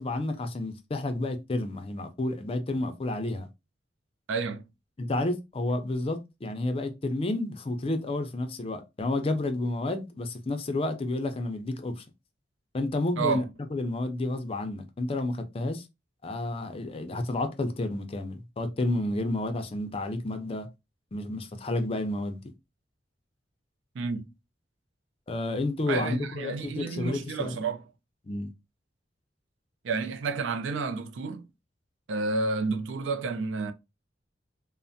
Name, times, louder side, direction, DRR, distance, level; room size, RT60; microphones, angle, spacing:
voice 1, 0.0-3.5 5.0-12.0 12.7-13.4 13.7-15.8 16.2-20.7 21.1-22.4 25.3-27.6 28.2-28.5, left 2 dB, 30° left, 0.4 m, -30 dB
voice 2, 4.3-4.7 13.2-13.4 24.0-24.3 25.9-27.8 29.8-31.5 32.1-33.7, right 4 dB, 85° right, 0.4 m, -30 dB
3.2 x 2.0 x 2.5 m
head